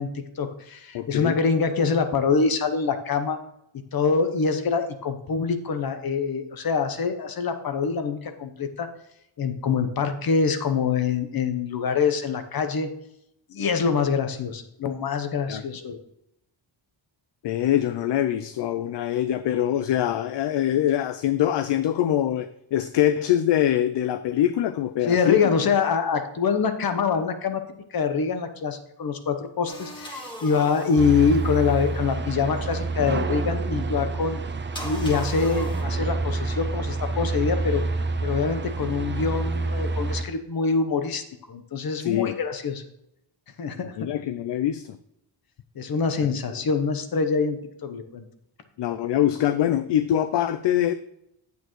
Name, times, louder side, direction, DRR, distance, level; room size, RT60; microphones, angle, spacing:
voice 1, 0.0-3.4 3.9-8.9 9.4-12.9 13.5-16.0 25.0-27.6 27.9-34.4 34.8-37.8 38.2-42.8 43.6-44.1 45.7-48.3, left 5 dB, 50° left, 8 dB, 1.0 m, -25 dB
voice 2, 0.9-1.4 15.5-15.6 17.4-25.4 42.0-42.3 44.0-45.0 46.3-46.4 48.8-50.9, left 11 dB, 65° left, 12 dB, 0.5 m, -24 dB
sound 1, 29.7-32.1 34.7-35.8, left 1 dB, 10° left, 1.5 m, -39 dB
sound 2, 31.0-40.2, right 3 dB, 25° right, 0.6 m, -28 dB
9.0 x 8.1 x 3.1 m, 0.80 s
wide cardioid pair, 150°, 47 cm